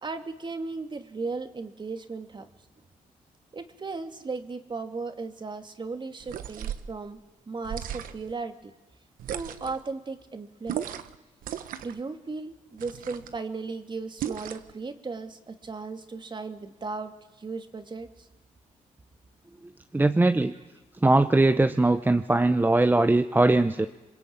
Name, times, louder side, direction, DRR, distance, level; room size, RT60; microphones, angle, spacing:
voice 1, 0.0-2.5 3.5-7.2 7.5-8.7 9.3-10.8 11.8-17.1 17.4-18.3, right 4 dB, 35° right, 7 dB, 2.3 m, -36 dB
sound 1, 6.2-6.9 7.6-8.3 9.2-9.8 10.7-11.2 11.4-12.0 12.8-13.4 14.2-14.7, right 10 dB, 85° right, 1.2 m, -36 dB
voice 2, 19.9-20.5 21.0-23.9, right 2 dB, 15° right, 9 dB, 0.9 m, -21 dB
27.0 x 22.5 x 8.8 m, 1.1 s
cardioid pair, 85°, 14 cm